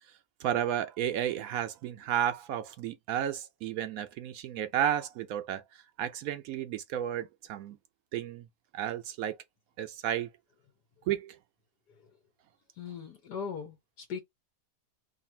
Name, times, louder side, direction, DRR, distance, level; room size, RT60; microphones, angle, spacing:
voice 1, 0.4-5.6 6.0-7.8 8.1-8.5 8.7-9.4 9.8-10.3 11.1-11.4, right 10 dB, 70° right, 0.9 m, -32 dB
voice 2, 12.8-14.2, left 6 dB, 85° left, 1.5 m, -39 dB
3.2 x 2.6 x 4.2 m
omnidirectional pair, 1.7 m